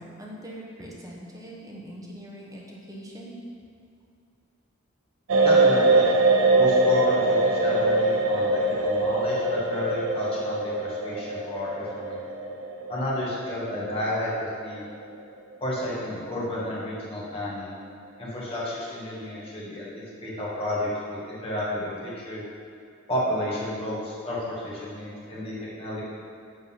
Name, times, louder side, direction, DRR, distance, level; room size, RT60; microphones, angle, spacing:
voice 1, 0.0-3.4, equal, 15° right, -4 dB, 1.0 m, -42 dB
sound 1, 5.3-15.2 15.5-15.7, right 2 dB, 80° right, 0.6 m, -23 dB
voice 2, 5.4-6.1 6.5-12.2 12.9-14.8 15.6-17.8 18.2-22.4 23.1-26.0, left 1 dB, 30° left, -7 dB, 1.7 m, -31 dB
7.7 x 3.9 x 5.6 m, 2.4 s
head